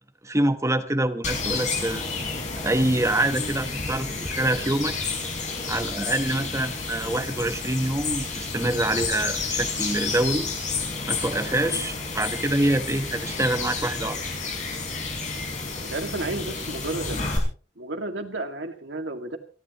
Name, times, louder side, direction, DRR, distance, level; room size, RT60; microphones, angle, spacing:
voice 1, 0.2-2.0 2.6-5.0 5.7-10.5 11.1-14.2, right 1 dB, 15° right, 8 dB, 1.2 m, -25 dB
sound 1, 1.2-17.4, left 4 dB, 40° left, 5.7 m, -30 dB
voice 2, 15.9-17.3 17.8-19.4, right 2 dB, 85° right, 5 dB, 2.2 m, -32 dB
28.5 x 11.0 x 3.1 m, 0.37 s
head